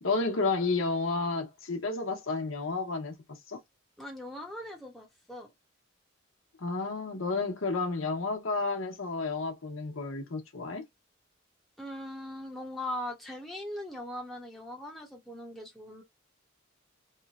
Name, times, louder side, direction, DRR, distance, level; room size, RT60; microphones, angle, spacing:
voice 1, 0.0-3.6 6.6-10.8, left 3 dB, 85° left, 0.9 m, -31 dB
voice 2, 4.0-5.5 11.8-16.0, left 1 dB, ahead, 0.8 m, -40 dB
3.0 x 2.1 x 2.3 m
head